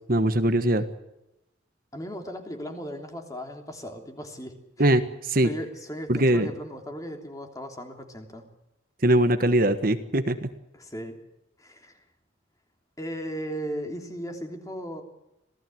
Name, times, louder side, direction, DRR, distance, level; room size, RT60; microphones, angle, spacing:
voice 1, 0.1-0.8 4.8-5.5 6.1-6.5 9.0-10.5, right 1 dB, 45° right, 9 dB, 1.4 m, -21 dB
voice 2, 1.9-4.5 5.4-8.4 10.7-11.2 11.6-12.0 13.0-15.0, equal, 15° left, 4 dB, 3.2 m, -36 dB
26.5 x 17.5 x 7.9 m, 0.91 s
head